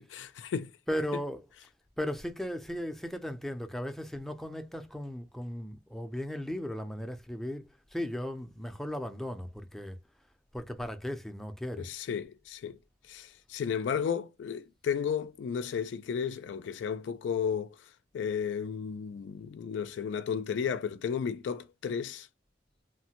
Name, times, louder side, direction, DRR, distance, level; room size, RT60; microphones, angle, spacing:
voice 1, 0.0-0.7 11.8-12.8 13.1-17.8 18.1-22.3, left 7 dB, 90° left, 0.3 m, -33 dB
voice 2, 0.9-1.5 2.0-10.0 10.5-11.9, equal, ahead, 0.4 m, -36 dB
3.1 x 2.1 x 2.8 m
head